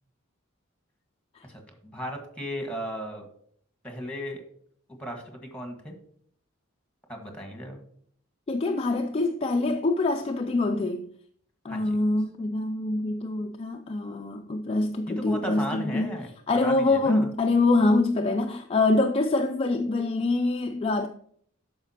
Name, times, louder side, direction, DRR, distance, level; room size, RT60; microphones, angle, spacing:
voice 1, 1.5-3.3 3.8-4.4 5.0-6.0 7.1-7.8 11.7-11.9 15.2-17.3, equal, 5° left, 1.5 m, -36 dB
voice 2, 8.5-11.1 11.6-16.1 16.5-21.1, left 2 dB, 30° left, 0.4 m, -25 dB
12.5 x 5.0 x 2.8 m
head